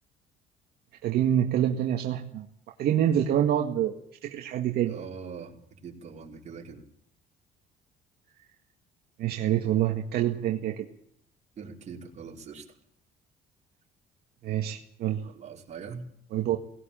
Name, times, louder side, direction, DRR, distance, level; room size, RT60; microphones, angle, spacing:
voice 1, 1.0-2.5 2.8-3.9 4.2-4.9 9.2-10.9 14.4-15.3 16.3-16.6, right 11 dB, 70° right, 2 dB, 2.0 m, -26 dB
voice 2, 4.9-6.8 11.6-12.8 15.2-16.1, right 5 dB, 45° right, -1 dB, 5.3 m, -42 dB
19.0 x 18.0 x 9.0 m, 0.68 s
cardioid pair, 110°, 17 cm